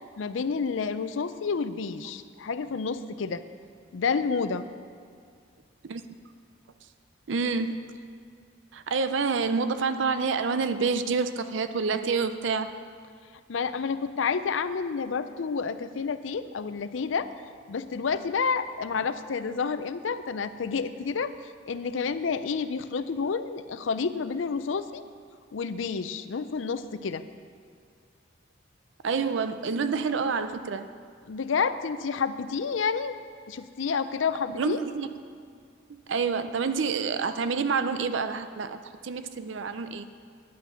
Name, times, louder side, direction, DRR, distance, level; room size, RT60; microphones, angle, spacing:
voice 1, 0.2-3.4 3.9-4.7 13.5-17.3 17.7-21.3 21.6-25.0 25.5-27.2 31.3-33.2 33.5-34.8, left 5 dB, 80° left, 12 dB, 0.5 m, -29 dB
voice 2, 7.3-8.1 8.7-12.7 29.0-30.9 34.6-35.1 35.9-40.1, right 5 dB, 70° right, 10 dB, 0.5 m, -28 dB
10.5 x 8.5 x 5.7 m, 2.2 s
head